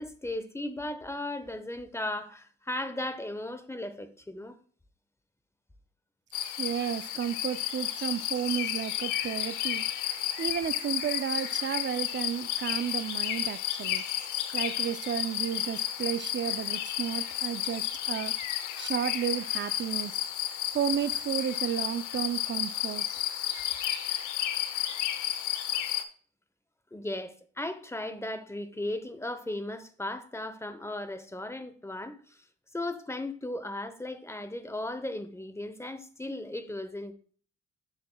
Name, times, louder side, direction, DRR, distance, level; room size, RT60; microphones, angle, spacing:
voice 1, 0.0-4.5 23.7-23.9 26.9-32.4 32.7-37.1, left 1 dB, 10° left, 0.8 m, -36 dB
sound 1, 6.3-26.0, left 11 dB, 85° left, 0.7 m, -32 dB
voice 2, 6.6-9.8 10.4-14.0 14.5-18.4 18.8-20.2 20.7-23.1, right 9 dB, 40° right, 0.4 m, -32 dB
7.4 x 7.1 x 2.2 m
cardioid pair, 90°, 30 cm